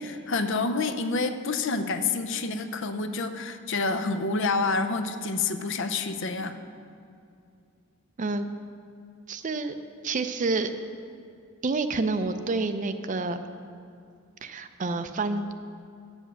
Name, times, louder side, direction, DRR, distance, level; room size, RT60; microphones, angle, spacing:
voice 1, 0.0-6.6, left 3 dB, 55° left, 9 dB, 0.5 m, -28 dB
voice 2, 9.3-9.7 10.0-10.7 11.6-13.4 14.4-15.5, right 3 dB, 35° right, 9 dB, 0.4 m, -28 dB
9.1 x 8.0 x 6.3 m, 2.5 s
head